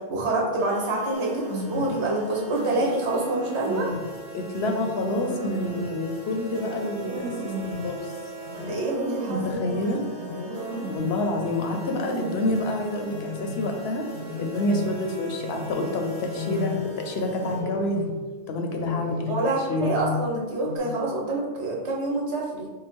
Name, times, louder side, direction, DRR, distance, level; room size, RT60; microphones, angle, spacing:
voice 1, 0.1-3.9 8.6-10.0 19.3-22.7, right 2 dB, 70° right, -2 dB, 1.2 m, -27 dB
sound 1, 0.6-17.6, right 2 dB, 40° right, 0.8 m, -40 dB
sound 2, 1.1-2.0 2.7-4.1 4.7-6.0 6.6-7.9 8.4-9.7 10.1-11.2 11.7-12.7 13.1-13.7 14.1-15.0 15.4-15.8 16.2-17.0 17.4-18.2 18.7-19.5 19.8-20.3 20.6-20.8, left 1 dB, 90° right, 1.0 m, -33 dB
voice 2, 4.3-7.2 7.6-8.1 9.3-10.0 10.9-14.1 14.4-18.0 18.5-19.3 19.6-19.9, left 1 dB, 65° left, 3 dB, 0.8 m, -28 dB
4.7 x 2.0 x 4.3 m, 1.3 s
omnidirectional pair, 1.2 m